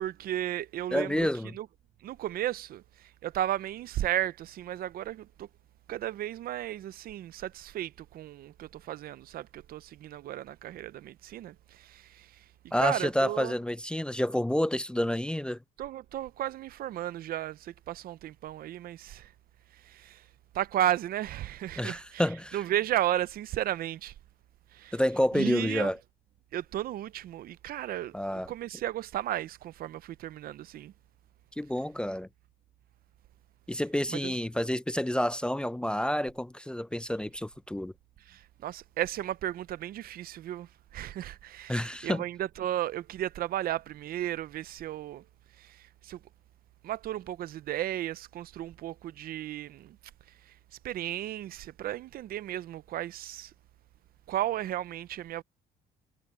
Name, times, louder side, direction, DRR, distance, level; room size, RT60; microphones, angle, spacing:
voice 1, 0.0-1.3 1.5-1.7 2.0-5.5 5.9-12.5 12.8-13.6 15.8-19.3 19.7-20.3 20.5-22.3 22.5-24.1 24.7-25.0 25.3-25.9 26.5-28.2 28.5-30.9 34.1-34.3 38.3-45.3 45.6-46.2 46.8-50.0 50.4-50.6 50.8-53.5 54.3-55.4, right 12 dB, 60° right, 0.7 m, -34 dB
voice 2, 0.9-1.5 12.7-15.6 21.8-22.6 24.9-26.0 28.1-28.5 31.6-32.3 33.7-37.9 41.7-42.2, left 1 dB, 5° left, 0.5 m, -29 dB
cardioid pair, 110°, 17 cm